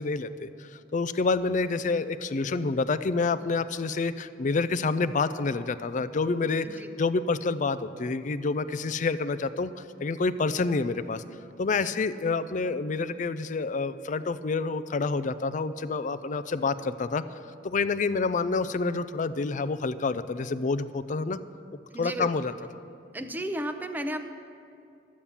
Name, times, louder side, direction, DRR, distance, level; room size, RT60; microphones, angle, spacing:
voice 1, 0.0-9.7 10.0-11.2 11.6-17.2 17.6-21.4 22.0-22.5, left 4 dB, 45° left, 13 dB, 0.4 m, -28 dB
voice 2, 21.9-22.3 23.1-24.2, equal, 10° right, 7 dB, 0.6 m, -33 dB
12.0 x 8.5 x 7.2 m, 2.6 s
head